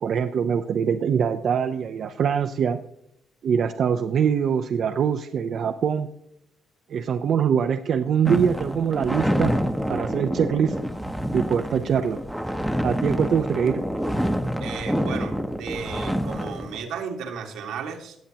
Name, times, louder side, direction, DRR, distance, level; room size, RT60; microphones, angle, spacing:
voice 1, 0.0-2.8 3.4-6.1 6.9-9.5 9.9-10.8 11.3-12.2 12.8-13.8, right 7 dB, 60° right, 6 dB, 0.6 m, -23 dB
sound 1, 8.2-16.8, equal, ahead, 0.9 m, -27 dB
voice 2, 14.6-18.2, right 6 dB, 90° right, 2 dB, 1.7 m, -34 dB
18.0 x 7.5 x 2.9 m, 0.74 s
cardioid pair, 90°, 0 cm